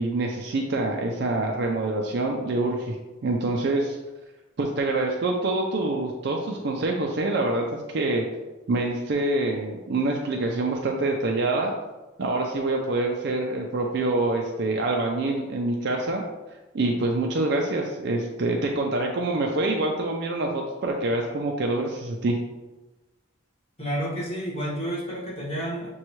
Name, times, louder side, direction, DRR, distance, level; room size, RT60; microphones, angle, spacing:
voice 1, 0.0-3.0 3.2-4.0 4.6-8.3 8.7-11.7 12.2-16.2 16.7-22.4, right 2 dB, 55° right, 0 dB, 0.4 m, -26 dB
voice 2, 23.8-25.9, equal, 30° left, -8 dB, 1.5 m, -30 dB
6.3 x 2.3 x 3.0 m, 1.1 s
head